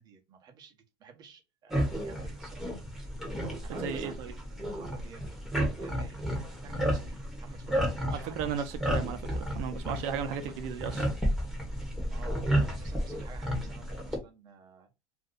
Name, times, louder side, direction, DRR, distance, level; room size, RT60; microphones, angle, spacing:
voice 1, 0.0-2.7 3.6-5.3 5.8-6.2 6.6-8.8 9.8-9.9 10.2-11.0 12.1-14.9, right 6 dB, 35° right, 1.0 m, -52 dB
sound 1, 1.7-14.2, equal, ahead, 1.2 m, -32 dB
voice 2, 3.8-4.3 8.1-11.1, right 7 dB, 65° right, 0.7 m, -35 dB
2.6 x 2.3 x 3.7 m
supercardioid pair, 140°, 11 cm